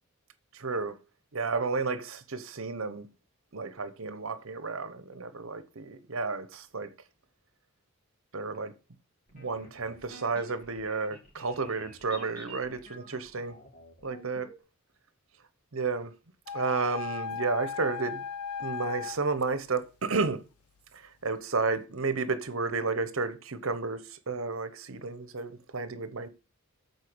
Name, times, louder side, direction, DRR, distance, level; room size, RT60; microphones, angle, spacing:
voice 1, 0.5-1.0 1.3-3.1 3.5-6.9 8.3-8.8 9.3-13.6 14.0-14.4 15.7-16.2 16.5-18.2 18.6-20.4 20.9-26.3, right 4 dB, 60° right, 0.9 m, -32 dB
sound 1, 9.3-14.6, right 1 dB, 35° left, 2.7 m, -50 dB
sound 2, 16.5-19.2, left 6 dB, 80° left, 0.5 m, -36 dB
8.2 x 4.5 x 6.1 m
head